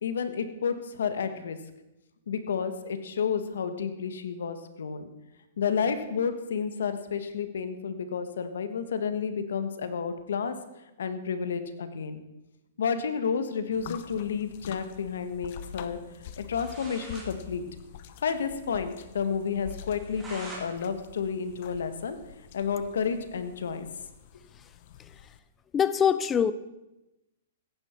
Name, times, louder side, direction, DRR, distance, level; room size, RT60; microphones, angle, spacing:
voice 1, 0.0-1.6 2.3-5.1 5.6-10.6 11.0-12.2 12.8-16.0 16.4-17.6 18.2-22.2 22.5-23.9, left 6 dB, 80° left, 9 dB, 1.5 m, -31 dB
sound 1, 13.7-25.4, left 10 dB, 50° left, 0.9 m, -47 dB
sound 2, 16.2-16.3 16.5-17.3 17.6-17.7 18.0-18.1 18.5-18.6 19.0-19.1 19.7-20.7 21.0-22.4, right 2 dB, 10° right, 3.8 m, -45 dB
voice 2, 25.7-26.5, left 8 dB, 15° left, 15 dB, 0.5 m, -23 dB
15.5 x 11.0 x 4.5 m, 0.96 s
hypercardioid pair, 145°, 0 cm